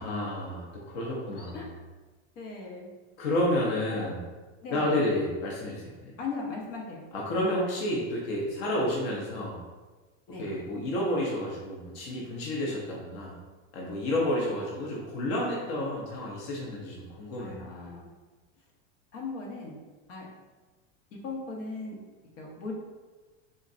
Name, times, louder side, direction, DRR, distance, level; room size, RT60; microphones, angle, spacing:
voice 1, 0.0-1.6 3.2-4.2 4.7-6.1 7.1-9.6 10.4-13.4 13.7-17.9, left 1 dB, 55° left, -3 dB, 0.8 m, -30 dB
voice 2, 1.3-1.7 2.3-2.9 3.9-4.1 4.6-5.0 6.2-7.0 10.3-10.5 14.1-14.5 17.4-18.1 19.1-19.8 20.1-20.3 21.1-22.0 22.4-22.7, left 3 dB, 80° left, -2 dB, 1.2 m, -39 dB
3.7 x 3.1 x 2.6 m, 1.3 s
supercardioid pair, 170°, 37 cm